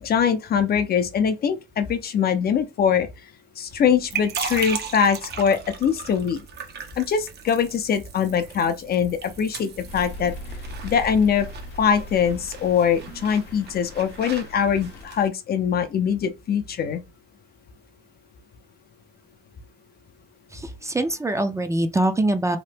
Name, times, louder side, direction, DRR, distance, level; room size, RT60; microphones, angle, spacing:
voice 1, 0.0-3.1 3.6-6.4 7.0-10.3 10.8-11.5 11.8-17.0, left 7 dB, 50° left, 0.5 m, -22 dB
sound 1, 3.7-15.3, right 6 dB, 55° right, 0.6 m, -37 dB
sound 2, 9.9-15.1, left 1 dB, 70° left, 0.8 m, -39 dB
voice 2, 20.5-22.6, right 1 dB, 15° right, 0.4 m, -23 dB
2.8 x 2.1 x 3.3 m
cardioid pair, 90°, 20 cm